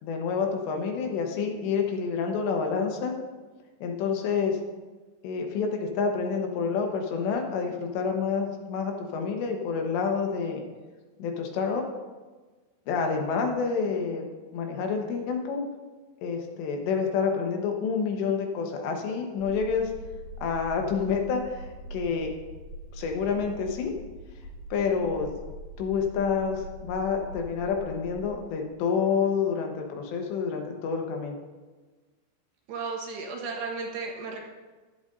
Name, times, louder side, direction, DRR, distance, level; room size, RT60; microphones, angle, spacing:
voice 1, 0.0-3.1 3.8-4.6 5.2-10.6 11.2-11.8 12.9-14.2 14.5-15.6 16.2-19.9 20.4-21.7 21.9-22.3 22.9-23.9 24.7-25.3 25.8-31.4, left 5 dB, 80° left, 2 dB, 3.4 m, -28 dB
sound 1, 19.4-28.9, right 1 dB, 60° left, 2.5 m, -43 dB
voice 2, 32.7-34.5, right 4 dB, 75° right, 0 dB, 3.3 m, -34 dB
14.5 x 11.0 x 2.7 m, 1.3 s
omnidirectional pair, 5.0 m